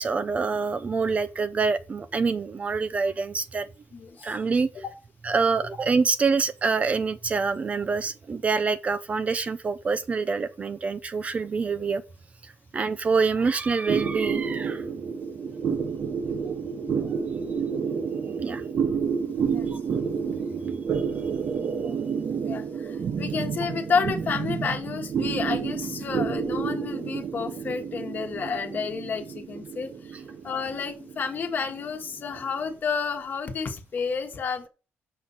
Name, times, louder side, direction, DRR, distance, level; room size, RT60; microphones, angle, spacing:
voice 1, 0.0-3.7 4.2-4.7 5.2-12.0 12.7-14.8 18.4-18.6, right 4 dB, 30° right, 0.5 m, -26 dB
voice 2, 3.9-4.3 4.8-4.9 19.5-19.7 22.4-30.2 30.4-34.7, left 5 dB, 40° left, 1.3 m, -30 dB
sound 1, 13.9-32.6, right 6 dB, 45° right, 0.9 m, -30 dB
6.6 x 5.9 x 5.5 m
cardioid pair, 145°, 5 cm